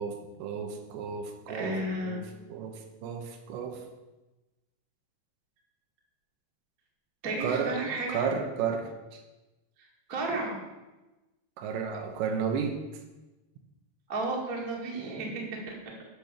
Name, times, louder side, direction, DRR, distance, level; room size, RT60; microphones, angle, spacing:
voice 1, 0.0-1.7 2.0-2.2 2.5-3.8 7.4-7.8 8.1-9.2 11.6-12.8, right 6 dB, 80° right, 5 dB, 3.3 m, -33 dB
voice 2, 1.5-2.2 7.2-8.2 9.8-10.6 14.1-15.7, right 2 dB, 45° right, -2 dB, 1.1 m, -33 dB
9.2 x 6.0 x 6.7 m, 1.1 s
omnidirectional pair, 5.1 m